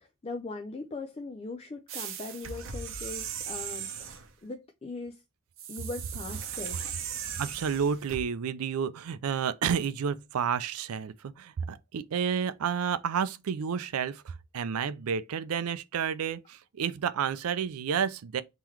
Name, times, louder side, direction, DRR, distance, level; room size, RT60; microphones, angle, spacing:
voice 1, 0.0-5.2 5.7-6.8, left 3 dB, 25° left, 0.4 m, -40 dB
sound 1, 1.9-4.3 5.6-8.2, right 7 dB, 65° right, 0.8 m, -38 dB
voice 2, 7.4-18.4, right 7 dB, 90° right, 0.4 m, -30 dB
3.7 x 2.9 x 4.5 m
head